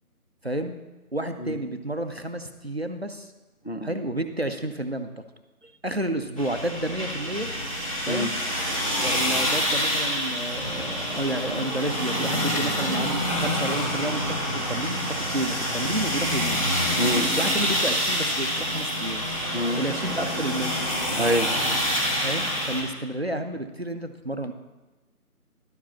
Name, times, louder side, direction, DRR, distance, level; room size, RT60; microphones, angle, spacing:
voice 1, 0.4-0.8 1.1-3.3 3.8-5.1 5.8-7.5 8.1-8.3 9.0-16.7 17.4-19.2 19.8-20.8 22.2-24.5, right 1 dB, 45° right, 6 dB, 0.6 m, -30 dB
sound 1, 6.4-22.8, equal, 20° left, 1.3 m, -27 dB
voice 2, 17.0-17.3 19.5-19.8 21.2-21.5, left 1 dB, 40° left, 5 dB, 0.5 m, -26 dB
11.5 x 5.0 x 7.1 m, 1.1 s
figure-of-eight pair, 170°, 45 cm